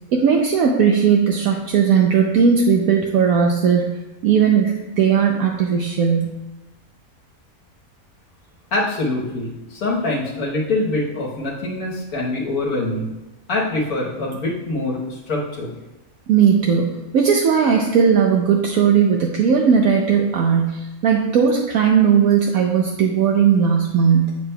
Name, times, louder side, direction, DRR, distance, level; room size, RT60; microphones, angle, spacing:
voice 1, 0.1-4.0 4.2-6.3 16.3-24.4, right 7 dB, 70° right, 1 dB, 1.1 m, -17 dB
voice 2, 8.7-13.2 13.5-15.7, left 2 dB, 75° left, -4 dB, 1.6 m, -24 dB
8.1 x 6.7 x 2.2 m, 1.0 s
omnidirectional pair, 1.6 m